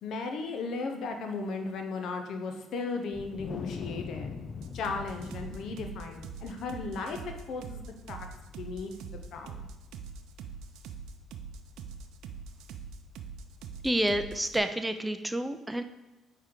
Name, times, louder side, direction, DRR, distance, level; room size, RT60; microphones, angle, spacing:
voice 1, 0.0-4.3 4.7-8.3 8.6-8.9 9.3-9.6, left 4 dB, 70° left, 4 dB, 0.9 m, -36 dB
Wind, 3.1-9.7, left 5 dB, 50° left, 0.4 m, -43 dB
sound 1, 4.6-14.6, right 6 dB, 75° right, 0.5 m, -43 dB
voice 2, 13.8-15.8, right 1 dB, 10° right, 9 dB, 0.5 m, -29 dB
9.4 x 3.5 x 3.8 m, 1.1 s
supercardioid pair, 60°, 0 cm